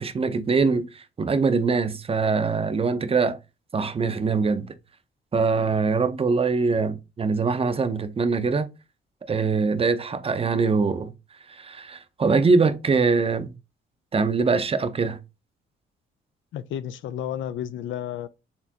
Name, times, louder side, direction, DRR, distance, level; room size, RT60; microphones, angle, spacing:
voice 1, 0.0-3.4 3.7-4.7 5.3-8.7 9.3-11.1 11.5-13.5 14.1-15.2, right 4 dB, 30° right, 0.6 m, -23 dB
voice 2, 16.5-18.3, left 10 dB, 75° left, 0.5 m, -32 dB
4.3 x 3.4 x 2.8 m
cardioid pair, 90°, 20 cm